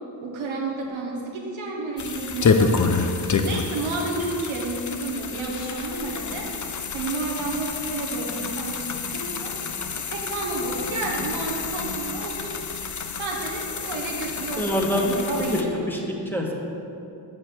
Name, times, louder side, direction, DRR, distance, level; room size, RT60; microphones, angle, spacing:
voice 1, 0.2-6.5 6.9-9.5 10.0-12.6 13.2-15.7, right 3 dB, 90° right, -2 dB, 1.5 m, -31 dB
sound 1, 2.0-15.6, left 4 dB, 40° left, 0.7 m, -28 dB
voice 2, 14.6-15.1 15.5-16.5, left 1 dB, 5° left, -2 dB, 1.5 m, -25 dB
7.6 x 6.4 x 6.2 m, 2.8 s
cardioid pair, 65°, 46 cm